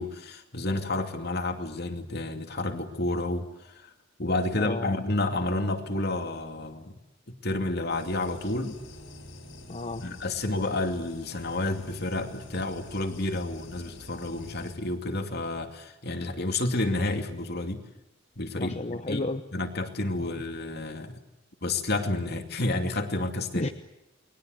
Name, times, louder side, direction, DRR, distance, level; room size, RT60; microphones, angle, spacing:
voice 1, 0.0-3.9 4.2-6.9 7.4-8.8 10.0-17.8 18.4-19.2 19.5-21.2 21.6-23.7, left 2 dB, 55° left, 5 dB, 2.6 m, -30 dB
voice 2, 4.6-4.9 9.7-10.1 18.6-19.4 20.1-20.4 23.5-23.7, left 2 dB, 35° left, 7 dB, 0.9 m, -32 dB
sound 1, 7.9-14.8, left 1 dB, 85° left, 5.5 m, -47 dB
29.5 x 21.5 x 8.0 m, 0.91 s
head